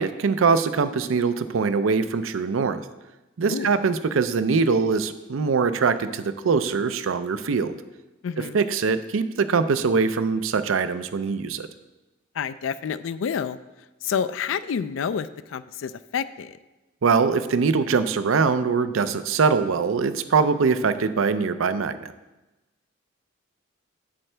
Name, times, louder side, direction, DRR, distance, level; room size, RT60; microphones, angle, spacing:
voice 1, 0.0-2.8 3.4-7.8 8.5-11.7 17.0-22.1, right 5 dB, 90° right, 12 dB, 0.5 m, -22 dB
voice 2, 8.2-8.6 12.4-13.6 14.0-16.6, left 7 dB, 70° left, 14 dB, 0.3 m, -29 dB
8.7 x 7.5 x 3.3 m, 1.0 s
head